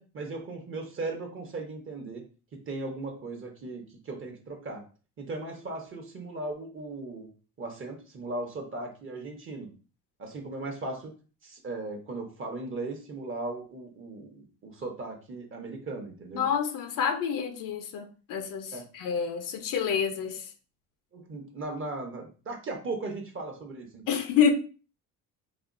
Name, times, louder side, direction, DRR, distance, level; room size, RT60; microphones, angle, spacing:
voice 1, 0.0-2.2 2.5-4.8 5.2-7.3 7.6-9.7 10.2-11.1 11.4-16.5 18.7-18.9 21.1-24.2, right 2 dB, 35° right, 0.9 m, -37 dB
voice 2, 16.3-20.4 24.1-24.5, left 7 dB, 70° left, 0.6 m, -28 dB
4.2 x 2.3 x 2.5 m
cardioid pair, 115°, 34 cm